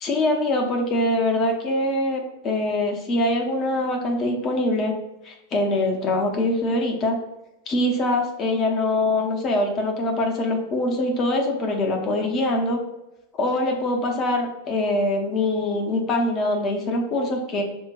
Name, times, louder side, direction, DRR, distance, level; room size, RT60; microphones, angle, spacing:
voice 1, 0.0-4.9 5.2-7.2 7.7-12.8 13.4-17.6, left 1 dB, 30° left, 2 dB, 0.7 m, -23 dB
6.2 x 2.2 x 2.5 m, 0.94 s
figure-of-eight pair, 90°, 0 cm